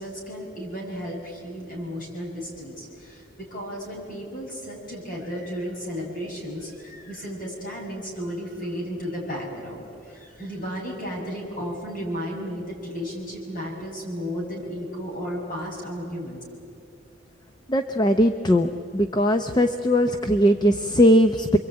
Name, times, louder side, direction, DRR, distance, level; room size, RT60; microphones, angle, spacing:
voice 1, 0.0-16.4, equal, 45° left, -1 dB, 7.4 m, -34 dB
voice 2, 17.7-21.6, equal, 20° left, 7 dB, 0.7 m, -20 dB
28.0 x 23.0 x 8.9 m, 2.4 s
head